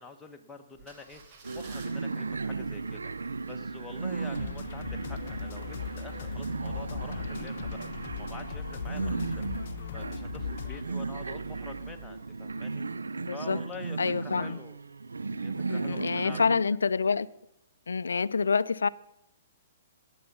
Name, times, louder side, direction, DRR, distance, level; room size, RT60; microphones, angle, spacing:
voice 1, 0.0-7.8 8.2-12.9 13.3-14.8 15.4-16.5, left 3 dB, 10° left, 1.4 m, -47 dB
sound 1, 0.7-13.2 13.7-13.8, right 5 dB, 45° right, 2.6 m, -50 dB
sound 2, 1.4-16.7, right 4 dB, 85° right, 0.4 m, -36 dB
sound 3, 4.3-10.8, left 9 dB, 55° left, 0.9 m, -39 dB
voice 2, 8.9-9.4 13.2-13.6 14.0-14.6 15.7-17.3 17.9-18.9, left 5 dB, 80° left, 0.4 m, -28 dB
18.0 x 7.3 x 5.6 m
hypercardioid pair, 125°, 0 cm